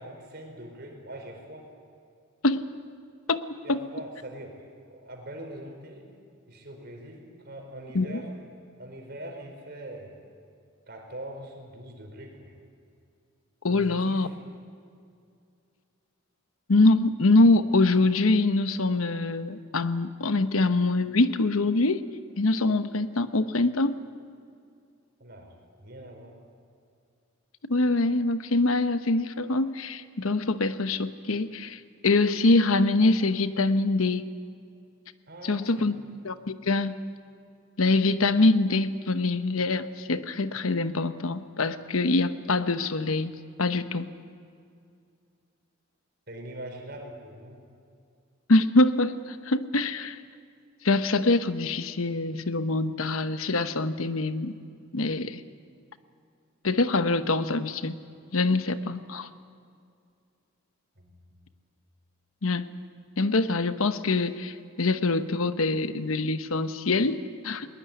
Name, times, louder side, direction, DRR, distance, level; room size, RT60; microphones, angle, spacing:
voice 1, 0.0-1.7 3.6-4.6 4.9-6.1 6.5-8.3 8.8-10.1 10.9-12.5 13.7-14.4 25.2-26.4 35.3-36.0 46.3-47.6 61.0-61.5, right 1 dB, 50° right, 3 dB, 4.6 m, -42 dB
voice 2, 13.6-14.3 16.7-22.1 22.4-24.0 27.6-34.2 35.4-35.9 36.2-37.0 37.8-43.3 43.6-44.1 48.5-50.2 50.8-54.5 54.9-55.4 56.6-58.0 58.3-59.3 62.4-62.7 63.2-67.7, left 2 dB, 80° left, 11 dB, 1.0 m, -24 dB
21.0 x 20.0 x 9.5 m, 2.4 s
head